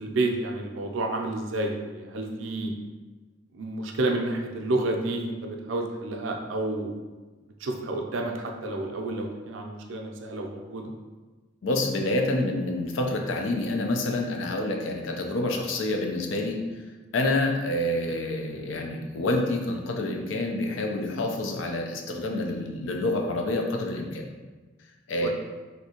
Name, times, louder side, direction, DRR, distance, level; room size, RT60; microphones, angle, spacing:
voice 1, 0.0-2.7 3.5-6.9 7.6-10.9 25.2-25.3, right 2 dB, 85° right, 2 dB, 0.4 m, -30 dB
voice 2, 11.6-16.8 17.1-24.3 25.1-25.3, left 2 dB, 80° left, 2 dB, 0.5 m, -28 dB
3.2 x 2.7 x 2.8 m, 1.3 s
head